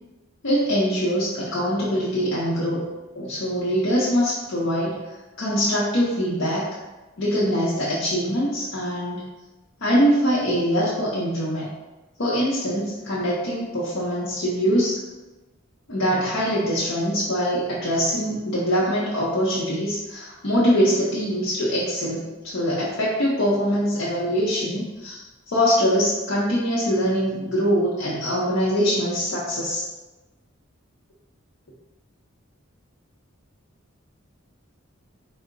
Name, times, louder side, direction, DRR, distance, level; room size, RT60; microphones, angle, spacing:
voice 1, 0.4-2.8 3.1-5.0 5.4-6.7 7.2-9.2 9.8-11.7 12.2-15.0 15.9-29.8, equal, 65° left, -8 dB, 0.7 m, -23 dB
4.4 x 2.1 x 3.7 m, 1.1 s
head